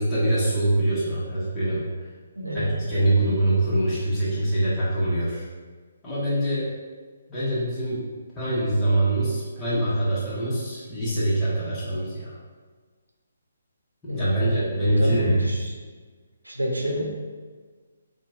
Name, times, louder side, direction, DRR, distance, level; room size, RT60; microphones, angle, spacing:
voice 1, 0.0-1.9 2.5-5.5 6.0-6.7 7.3-8.1 8.4-12.4 14.0-15.5, right 1 dB, 15° left, -12 dB, 0.9 m, -24 dB
voice 2, 2.4-3.4 14.1-14.4 15.0-15.7 16.4-17.0, equal, 90° right, 0 dB, 0.6 m, -30 dB
2.9 x 2.2 x 3.5 m, 1.5 s
figure-of-eight pair, 140°, 0 cm